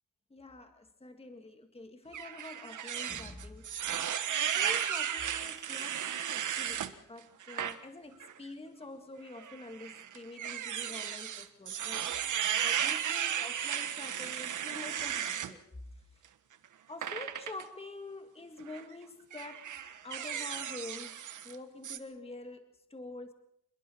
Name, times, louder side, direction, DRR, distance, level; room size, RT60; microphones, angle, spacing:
voice 1, 0.3-3.7 4.4-12.1 12.3-15.6 15.9-16.0 16.9-23.3, left 2 dB, 20° left, 7 dB, 1.9 m, -47 dB
sound 1, 2.1-6.9 7.4-7.7 8.2-8.3 9.4-15.5 17.0-17.6 18.6-18.8 19.3-21.5 21.8-22.0, right 9 dB, 65° right, 1.4 m, -35 dB
27.5 x 21.5 x 4.5 m, 0.72 s
cardioid pair, 100°, 32 cm